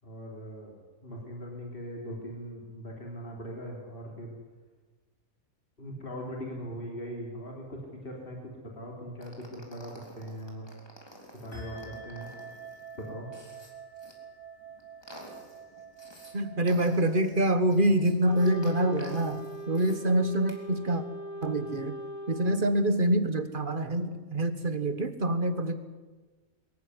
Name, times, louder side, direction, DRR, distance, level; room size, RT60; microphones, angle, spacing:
voice 1, 0.0-4.4 5.8-10.7 11.4-12.3 13.0-13.3, equal, 40° left, 0 dB, 3.6 m, -40 dB
sound 1, 9.2-14.1 14.6-16.3 16.7-20.0 20.3-20.6, equal, 15° left, 3.7 m, -50 dB
sound 2, 11.5-19.6, right 4 dB, 55° left, 5.4 m, -48 dB
voice 2, 16.3-19.4 19.7-21.0 21.4-22.0 22.3-25.8, right 1 dB, 40° right, 10 dB, 1.6 m, -26 dB
Wind instrument woodwind instrument, 18.2-23.4, right 1 dB, 85° left, 5.1 m, -41 dB
23.0 x 14.5 x 9.7 m, 1.3 s
omnidirectional pair, 1.5 m